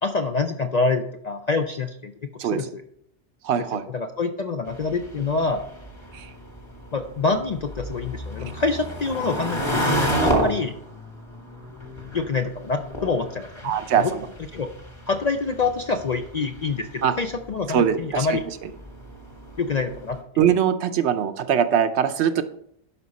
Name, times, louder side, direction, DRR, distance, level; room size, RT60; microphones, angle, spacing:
voice 1, 0.0-2.8 3.7-5.6 6.9-10.7 12.1-14.1 14.5-14.7 15.1-18.4 19.6-20.2, left 4 dB, 55° left, 6 dB, 0.5 m, -26 dB
voice 2, 3.4-3.8 6.1-6.3 13.6-14.3 17.0-17.1 17.7-18.4 20.4-22.4, right 8 dB, 70° right, 10 dB, 0.9 m, -22 dB
sound 1, 4.7-20.2, right 1 dB, 25° left, 1.5 m, -32 dB
11.5 x 4.8 x 4.1 m, 0.70 s
omnidirectional pair, 1.2 m